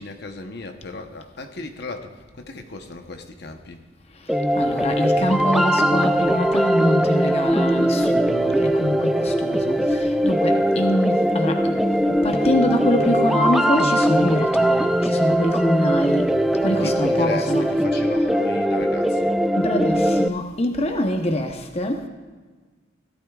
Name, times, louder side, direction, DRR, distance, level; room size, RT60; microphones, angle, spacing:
voice 1, 0.0-3.8 16.8-19.3, left 2 dB, 60° left, 5 dB, 0.9 m, -35 dB
sound 1, 4.3-20.3, equal, ahead, 0.3 m, -20 dB
voice 2, 4.6-16.3 16.6-17.6 19.6-22.1, left 1 dB, 35° left, 4 dB, 0.9 m, -25 dB
17.0 x 12.0 x 2.4 m, 1.4 s
head